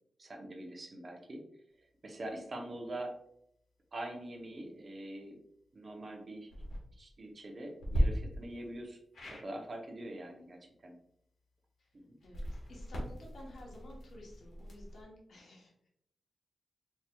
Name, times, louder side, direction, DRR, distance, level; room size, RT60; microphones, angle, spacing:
voice 1, 0.2-1.4 2.0-3.2 3.9-5.4 5.7-6.5 7.0-9.0 9.3-11.0 12.1-12.2, right 1 dB, 40° right, 2 dB, 0.7 m, -44 dB
sound 1, 6.4-6.8 7.8-8.0 9.1-9.5 12.2-15.0, equal, 90° left, 1.2 m, -36 dB
voice 2, 12.2-15.9, left 1 dB, 70° left, -2 dB, 1.0 m, -53 dB
4.6 x 2.9 x 2.2 m, 0.74 s
wide cardioid pair, 135°, 0 cm